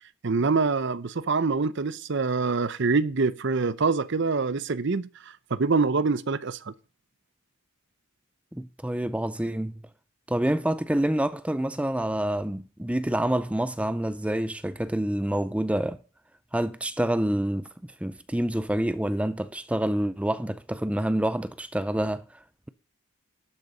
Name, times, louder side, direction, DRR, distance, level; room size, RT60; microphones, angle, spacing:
voice 1, 0.2-5.1 5.5-6.7, right 4 dB, 55° right, 0.6 m, -25 dB
voice 2, 8.5-9.8 10.3-16.0 16.5-22.2, right 1 dB, 5° right, 0.4 m, -27 dB
12.0 x 6.6 x 5.4 m
head